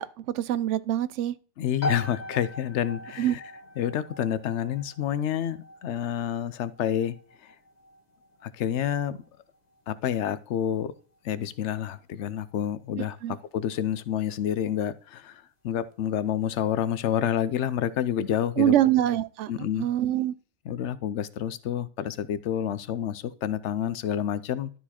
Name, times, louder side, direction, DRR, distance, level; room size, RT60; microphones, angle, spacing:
voice 1, 0.0-1.3 3.2-3.4 13.2-13.4 18.6-19.5 19.8-20.3, right 12 dB, 80° right, 0.9 m, -24 dB
voice 2, 1.6-3.4 3.8-7.2 8.4-9.2 9.9-10.9 11.2-13.2 13.5-18.7 19.5-19.9 20.7-24.7, left 10 dB, 75° left, 0.9 m, -28 dB
sound 1, 1.8-16.3, left 1 dB, 35° left, 1.7 m, -42 dB
12.0 x 4.6 x 4.2 m
omnidirectional pair, 1.2 m